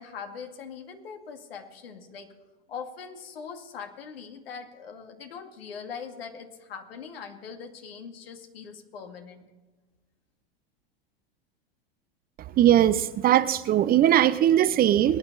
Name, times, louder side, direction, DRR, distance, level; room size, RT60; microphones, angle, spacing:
voice 1, 0.0-2.3 2.7-9.5, left 6 dB, 80° left, 4 dB, 2.3 m, -41 dB
voice 2, 12.6-15.2, right 11 dB, 30° right, 14 dB, 0.7 m, -20 dB
22.5 x 9.8 x 4.1 m, 1.2 s
hypercardioid pair, 100°, 29 cm